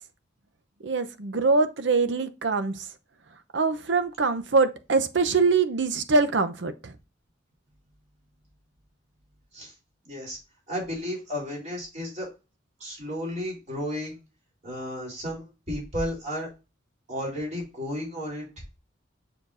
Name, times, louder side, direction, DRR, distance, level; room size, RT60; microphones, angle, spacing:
voice 1, 0.8-2.9 3.5-6.9, right 4 dB, 65° right, 0.7 m, -23 dB
voice 2, 10.0-10.4 10.7-12.3 12.8-14.1 14.6-16.5 17.1-18.5, equal, 35° right, 3.5 m, -33 dB
6.8 x 5.7 x 2.5 m
head